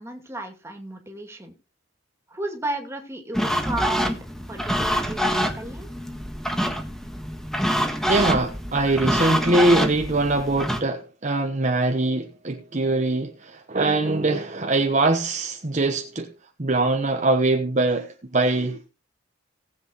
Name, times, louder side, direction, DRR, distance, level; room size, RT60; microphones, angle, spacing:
voice 1, 0.0-1.5 2.3-4.2 4.5-5.9, right 2 dB, 15° right, 2.4 m, -33 dB
sound 1, 3.3-10.8, equal, ahead, 1.5 m, -26 dB
voice 2, 8.1-16.3 16.6-18.9, right 2 dB, 40° right, 1.1 m, -22 dB
18.5 x 8.0 x 3.1 m
head